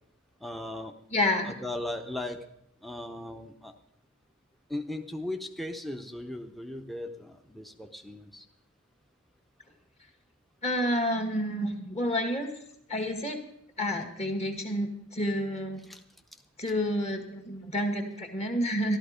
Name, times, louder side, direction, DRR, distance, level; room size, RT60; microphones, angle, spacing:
voice 1, 0.4-0.9 1.4-2.4 2.8-3.7 4.7-8.4 15.9-16.0, left 1 dB, ahead, 5 dB, 0.7 m, -37 dB
voice 2, 1.1-1.5 10.6-12.5 12.9-13.4 13.8-15.8 16.6-19.0, left 1 dB, 35° left, 4 dB, 1.8 m, -29 dB
13.5 x 12.0 x 5.0 m, 0.75 s
head